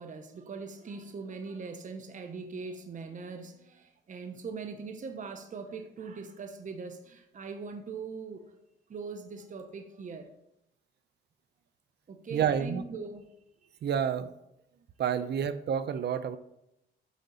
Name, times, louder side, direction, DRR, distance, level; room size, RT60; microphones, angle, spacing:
voice 1, 0.0-8.5 8.9-10.3 12.1-13.3, right 4 dB, 40° right, 6 dB, 0.9 m, -41 dB
voice 2, 12.3-12.8 13.8-14.3 15.0-16.4, right 8 dB, 55° right, 13 dB, 0.6 m, -29 dB
8.3 x 3.8 x 5.5 m, 0.84 s
cardioid pair, 90°, 20 cm